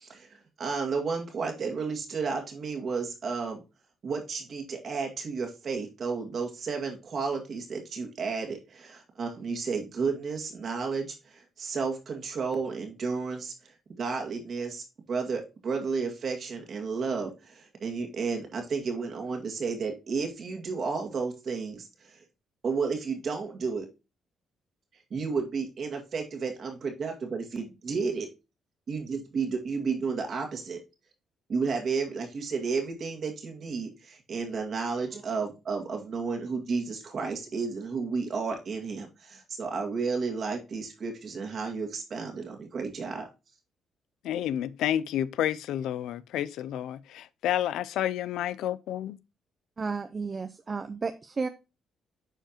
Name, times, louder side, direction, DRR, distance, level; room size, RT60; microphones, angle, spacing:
voice 1, 0.0-3.6 4.0-13.5 14.0-22.2 22.6-23.9 25.1-28.3 28.9-30.8 31.5-43.3, right 5 dB, 55° right, 2.0 m, -32 dB
voice 2, 44.2-49.2, left 11 dB, 85° left, 0.4 m, -30 dB
voice 3, 49.8-51.5, right 4 dB, 35° right, 0.5 m, -32 dB
8.8 x 4.6 x 2.9 m
cardioid pair, 90°, 0 cm